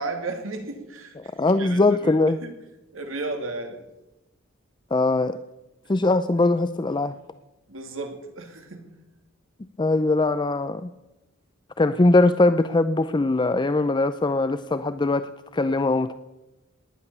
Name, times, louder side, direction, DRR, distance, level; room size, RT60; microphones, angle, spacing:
voice 1, 0.0-2.1 2.4-2.5 2.9-3.8 7.7-8.9, right 3 dB, 70° right, 5 dB, 2.5 m, -34 dB
voice 2, 1.2-2.4 4.9-5.4 5.9-7.2 9.8-10.9 11.8-16.1, left 2 dB, 20° left, 12 dB, 0.5 m, -21 dB
18.5 x 11.0 x 6.9 m, 1.0 s
head